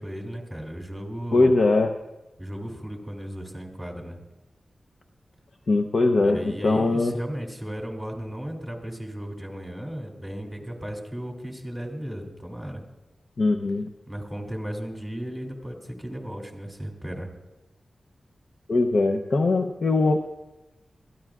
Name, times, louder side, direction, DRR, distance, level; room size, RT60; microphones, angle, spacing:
voice 1, 0.0-1.5 2.4-4.2 6.2-12.8 14.1-17.3, equal, ahead, 1 dB, 2.6 m, -35 dB
voice 2, 1.3-1.9 5.7-7.1 13.4-13.9 18.7-20.2, left 2 dB, 60° left, 5 dB, 0.7 m, -21 dB
21.5 x 14.0 x 2.4 m, 0.99 s
wide cardioid pair, 105°, 0 cm